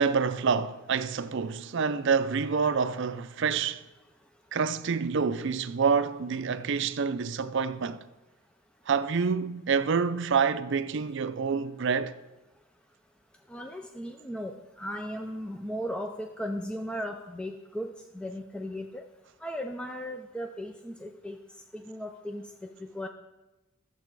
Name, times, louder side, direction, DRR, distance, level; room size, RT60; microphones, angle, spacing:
voice 1, 0.0-3.8 4.5-8.0 8.9-12.1, right 5 dB, 55° right, 0.5 m, -27 dB
voice 2, 13.5-19.0 19.4-21.4 21.7-22.4 22.9-23.1, equal, 5° left, 0.4 m, -36 dB
12.5 x 7.5 x 4.7 m
head